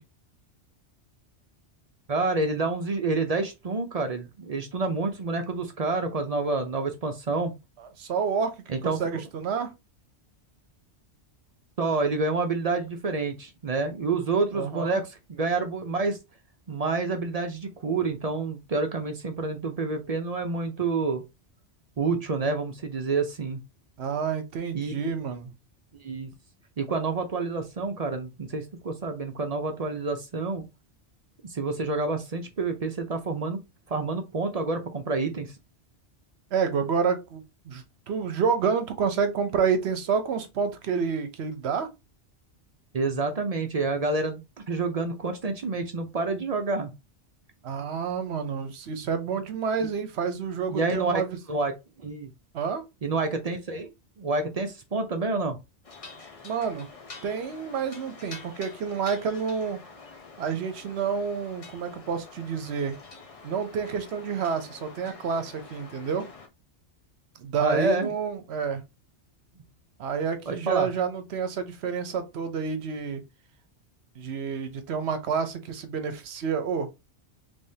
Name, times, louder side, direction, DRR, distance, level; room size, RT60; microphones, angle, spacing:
voice 1, 2.1-7.5 8.7-9.0 11.8-16.2 16.7-21.2 22.0-23.6 24.7-24.9 26.0-26.3 26.8-30.6 31.5-33.6 33.9-35.5 42.9-46.9 50.7-51.2 51.5-52.3 53.0-53.9 54.2-55.6 67.6-68.1 70.5-70.9, right 3 dB, 45° right, 0.5 m, -28 dB
voice 2, 7.8-9.7 14.5-15.0 24.0-25.5 36.5-41.9 47.6-51.4 52.5-52.8 56.4-56.9 57.2-59.8 60.4-63.0 63.4-66.3 67.4-68.8 70.0-73.2 74.2-76.9, right 6 dB, 70° right, 0.9 m, -29 dB
sound 1, 55.8-66.5, left 4 dB, 35° left, 0.7 m, -47 dB
3.5 x 3.4 x 2.7 m
omnidirectional pair, 1.2 m